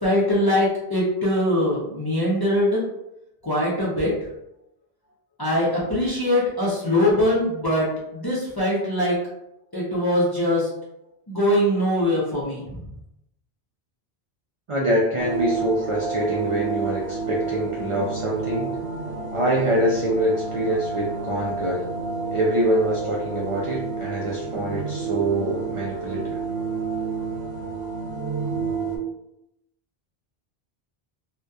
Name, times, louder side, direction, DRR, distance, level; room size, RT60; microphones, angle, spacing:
voice 1, 0.0-2.8 3.4-4.1 5.4-9.2 9.7-10.7 11.3-12.9, left 1 dB, 35° left, -7 dB, 0.4 m, -22 dB
voice 2, 14.7-18.7 19.3-21.9 22.3-26.4, right 1 dB, 60° right, -4 dB, 0.3 m, -25 dB
sound 1, 15.2-29.0, right 4 dB, 75° right, 0.9 m, -30 dB
2.7 x 2.1 x 2.3 m, 0.84 s
omnidirectional pair, 1.1 m